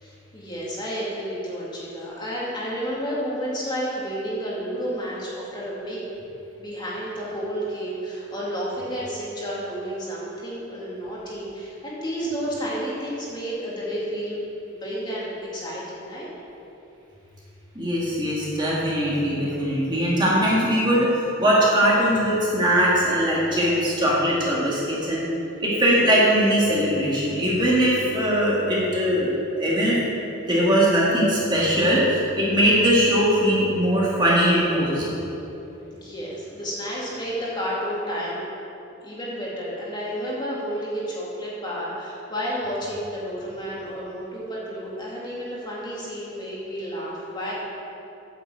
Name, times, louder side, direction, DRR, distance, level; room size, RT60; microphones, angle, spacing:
voice 1, 0.0-6.0 6.6-14.4 14.7-16.3 35.9-38.4 39.0-47.5, equal, 20° left, -6 dB, 2.3 m, -31 dB
voice 2, 17.8-25.3 25.6-29.3 29.6-30.2 30.5-35.1, equal, 20° right, -6 dB, 1.9 m, -21 dB
9.0 x 7.3 x 7.4 m, 2.9 s
head